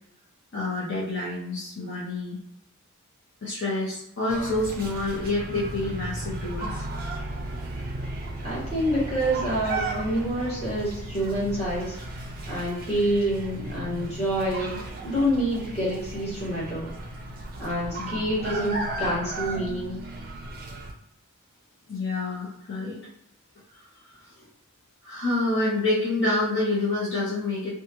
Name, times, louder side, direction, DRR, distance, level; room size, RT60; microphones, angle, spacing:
voice 1, 0.5-2.4 3.4-6.8 18.0-18.2 21.9-23.0 23.7-23.8 24.2-24.3 25.0-27.7, left 2 dB, 55° left, -7 dB, 0.7 m, -28 dB
sound 1, 4.3-20.9, right 2 dB, 45° right, 0.5 m, -35 dB
voice 2, 8.4-11.9 12.5-16.9 17.6-20.0, equal, 30° left, -8 dB, 1.3 m, -27 dB
2.7 x 2.3 x 2.9 m, 0.77 s
head